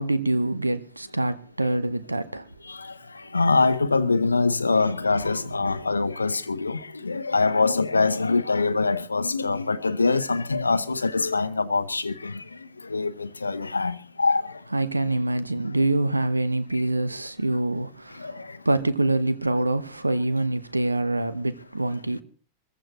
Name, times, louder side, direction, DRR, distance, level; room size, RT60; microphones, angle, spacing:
voice 1, 0.0-2.5 14.7-22.2, right 2 dB, 85° right, 0.8 m, -25 dB
voice 2, 2.7-12.4 12.8-14.6 16.7-16.8 18.2-18.6, left 3 dB, 80° left, 0.8 m, -24 dB
24.0 x 15.0 x 3.0 m
figure-of-eight pair, 90°, 0 cm